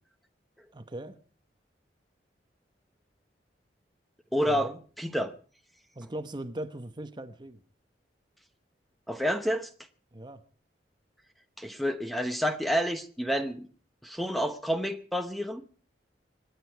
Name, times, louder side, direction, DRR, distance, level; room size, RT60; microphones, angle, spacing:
voice 1, 0.7-1.2 4.4-4.8 5.9-7.6 10.1-10.4, right 1 dB, 25° right, 1.0 m, -39 dB
voice 2, 4.3-4.7 5.0-5.3 9.1-9.7 11.6-13.7 14.0-15.6, equal, ahead, 1.0 m, -29 dB
26.0 x 9.9 x 4.6 m
head